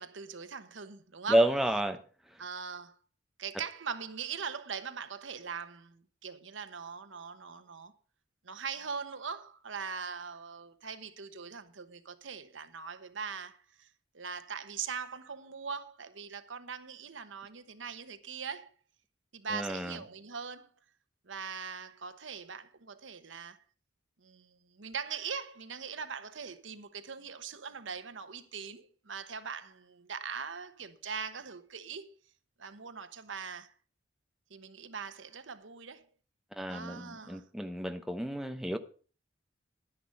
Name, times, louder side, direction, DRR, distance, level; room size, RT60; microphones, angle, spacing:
voice 1, 0.0-1.5 2.4-3.0 3.4-7.9 8.4-13.9 14.1-18.7 19.3-20.7 21.3-23.6 24.2-32.1 32.6-33.7 34.5-36.1 36.7-37.4, right 6 dB, 80° right, 1.1 m, -41 dB
voice 2, 1.3-2.0 19.5-20.0 36.5-38.8, right 1 dB, ahead, 0.8 m, -30 dB
10.5 x 10.0 x 5.2 m
head